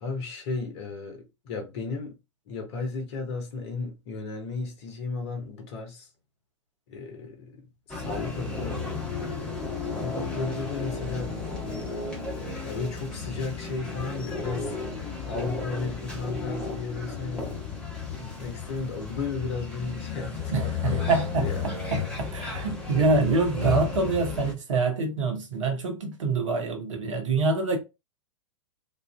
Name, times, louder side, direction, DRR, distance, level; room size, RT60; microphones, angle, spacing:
voice 1, 0.0-2.1 2.5-6.1 6.9-9.6 9.9-12.0 12.6-21.1 21.4-21.7 22.4-22.5, left 4 dB, 55° left, 0.8 m, -35 dB
sound 1, 7.9-24.5, left 5 dB, 5° left, 1.0 m, -33 dB
voice 2, 20.5-27.8, right 3 dB, 70° right, 0.8 m, -26 dB
2.4 x 2.4 x 2.2 m
figure-of-eight pair, 100°, 16 cm